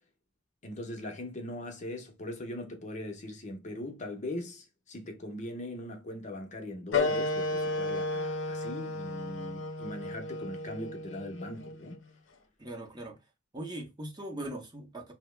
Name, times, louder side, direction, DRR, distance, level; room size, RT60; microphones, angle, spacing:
voice 1, 0.6-12.0, left 1 dB, 40° left, 0.7 m, -40 dB
sound 1, 6.9-12.0, left 2 dB, 80° left, 0.6 m, -33 dB
voice 2, 12.6-13.2 13.5-15.1, right 1 dB, 20° right, 0.7 m, -40 dB
2.8 x 2.0 x 3.1 m
head